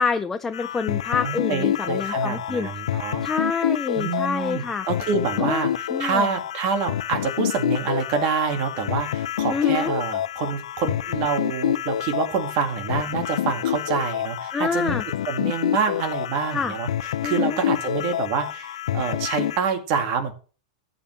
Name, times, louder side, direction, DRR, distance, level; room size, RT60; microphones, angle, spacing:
voice 1, 0.0-4.8 5.4-5.6 5.9-6.3 9.5-9.9 14.5-15.0 16.5-16.7 17.2-17.6, left 5 dB, 10° left, 7 dB, 0.4 m, -27 dB
sound 1, 0.5-19.6, left 11 dB, 85° left, 0.6 m, -27 dB
voice 2, 1.2-3.2 4.0-16.9 17.2-20.3, right 6 dB, 40° right, 6 dB, 2.1 m, -27 dB
14.5 x 8.7 x 3.3 m, 0.36 s
supercardioid pair, 165°, 3 cm